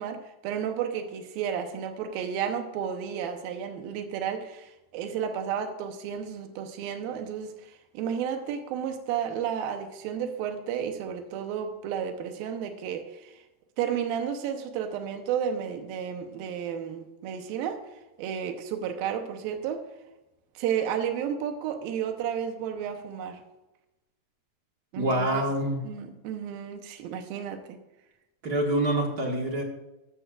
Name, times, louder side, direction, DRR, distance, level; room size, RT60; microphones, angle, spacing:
voice 1, 0.0-13.5 13.8-19.9 20.6-23.4 24.9-25.4 25.8-27.8, right 8 dB, 85° right, 5 dB, 2.8 m, -32 dB
voice 2, 24.9-25.8 28.4-29.6, right 1 dB, 40° right, 1 dB, 1.4 m, -26 dB
14.5 x 12.5 x 2.5 m, 0.98 s
omnidirectional pair, 4.1 m